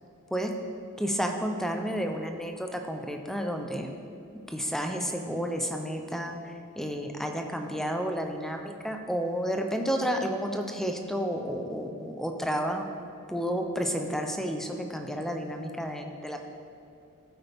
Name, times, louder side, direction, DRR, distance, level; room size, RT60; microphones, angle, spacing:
voice 1, 1.0-3.9 4.5-12.9 13.3-16.4, equal, ahead, 4 dB, 0.7 m, -31 dB
14.0 x 8.1 x 3.6 m, 2.8 s
head